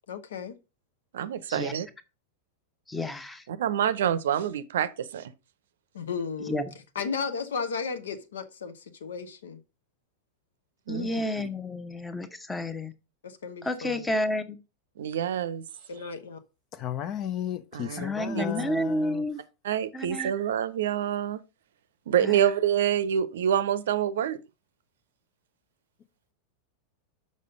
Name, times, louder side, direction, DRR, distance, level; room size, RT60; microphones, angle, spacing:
voice 1, 0.1-0.5 5.9-6.6 6.9-9.6 10.9-11.3 13.2-14.0 15.9-16.4, left 5 dB, 65° left, 1.0 m, -35 dB
voice 2, 1.1-1.9 3.5-5.3 10.9-11.5 15.0-15.6 17.7-18.1 18.3-18.5 19.6-21.4 22.1-24.4, right 9 dB, 60° right, 0.6 m, -27 dB
voice 3, 2.9-3.4 6.5-6.6 10.9-12.9 13.6-14.6 18.0-19.4 19.9-20.3 22.2-22.4, left 1 dB, 10° left, 0.9 m, -30 dB
voice 4, 16.8-19.2, left 9 dB, 35° left, 0.6 m, -34 dB
6.6 x 5.4 x 5.0 m
figure-of-eight pair, 90°, 0 cm